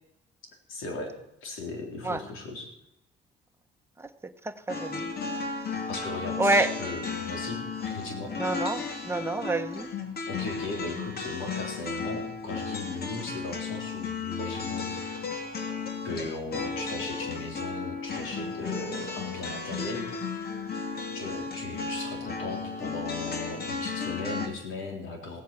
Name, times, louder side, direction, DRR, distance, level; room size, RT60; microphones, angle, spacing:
voice 1, 0.7-1.1 1.4-2.7 5.9-8.3 10.3-15.0 16.0-20.1 21.1-25.4, left 3 dB, 85° left, 2 dB, 3.7 m, -37 dB
voice 2, 4.4-5.2 6.4-6.7 8.4-9.9, right 2 dB, 10° right, 7 dB, 1.2 m, -28 dB
sound 1, 4.7-24.5, left 4 dB, 50° left, 2.4 m, -34 dB
16.5 x 8.4 x 7.6 m, 0.83 s
cardioid pair, 90°, 20 cm